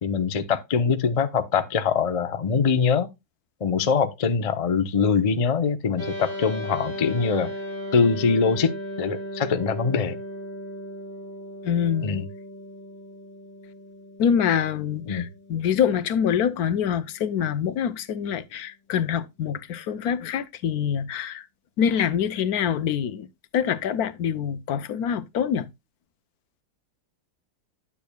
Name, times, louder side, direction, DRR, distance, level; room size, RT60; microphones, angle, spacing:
voice 1, 0.0-3.1 3.6-7.5 7.9-8.7 9.0-10.2 12.0-12.3 15.1-15.2, left 5 dB, 50° left, 0.4 m, -23 dB
sound 1, 6.0-17.5, equal, 40° right, 3.3 m, -37 dB
voice 2, 11.6-12.2 14.2-21.4 21.8-23.3 23.5-25.7, left 8 dB, 70° left, 1.1 m, -25 dB
9.2 x 8.5 x 2.2 m
omnidirectional pair, 1.7 m